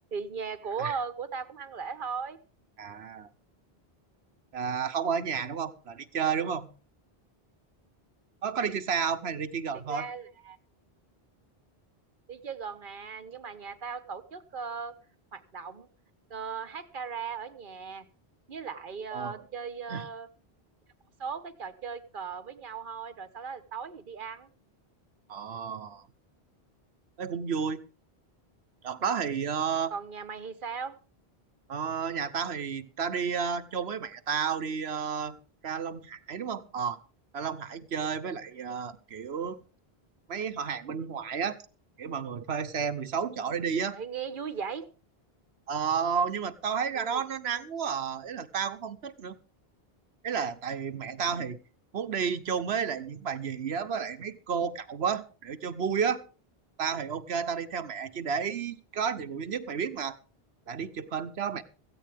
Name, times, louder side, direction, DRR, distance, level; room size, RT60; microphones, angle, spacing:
voice 1, 0.1-2.4 9.7-10.6 12.3-14.9 15.3-15.9 16.3-18.1 18.5-20.3 21.2-24.5 29.9-31.0 43.9-44.9 46.9-47.2, right 6 dB, 55° right, 12 dB, 1.3 m, -37 dB
voice 2, 2.8-3.3 4.5-6.7 8.4-10.1 19.1-19.4 19.9-20.0 25.3-26.0 27.2-27.8 28.8-29.9 31.7-35.4 35.6-37.0 37.3-39.6 40.3-41.6 42.0-44.0 45.7-49.4 50.2-51.6 51.9-56.2 56.8-60.2 60.7-61.6, right 6 dB, 80° right, 11 dB, 1.2 m, -31 dB
16.5 x 14.5 x 3.5 m, 0.36 s
omnidirectional pair, 1.1 m